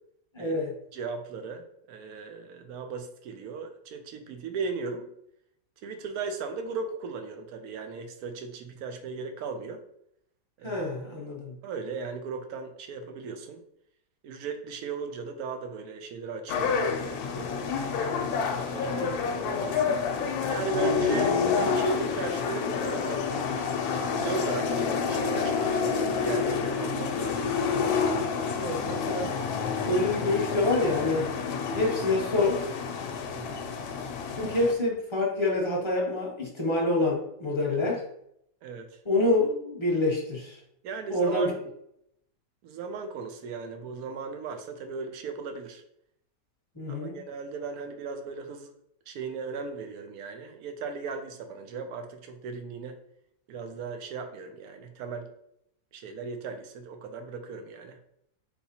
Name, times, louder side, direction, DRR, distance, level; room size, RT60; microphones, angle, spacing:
voice 1, 0.3-0.7 10.6-11.6 18.9-19.2 28.6-29.3 29.8-31.3 31.7-32.7 34.4-38.0 39.0-40.6 41.1-41.5 46.7-47.2, left 2 dB, 35° left, -3 dB, 0.5 m, -27 dB
voice 2, 0.9-5.1 5.8-9.8 10.6-10.8 11.6-13.6 14.2-17.6 18.2-20.0 20.5-23.2 24.1-27.5 28.9-29.0 31.7-32.0 33.3-33.7 37.7-37.9 38.6-39.0 40.8-41.7 42.6-45.8 46.9-48.7 49.1-53.0 53.5-55.3 55.9-58.0, right 4 dB, 70° right, 6 dB, 1.0 m, -37 dB
sound 1, 16.5-34.7, left 5 dB, 70° left, 1.0 m, -29 dB
sound 2, 21.6-27.1, left 7 dB, 90° left, 0.6 m, -41 dB
4.2 x 3.5 x 2.9 m, 0.75 s
omnidirectional pair, 1.8 m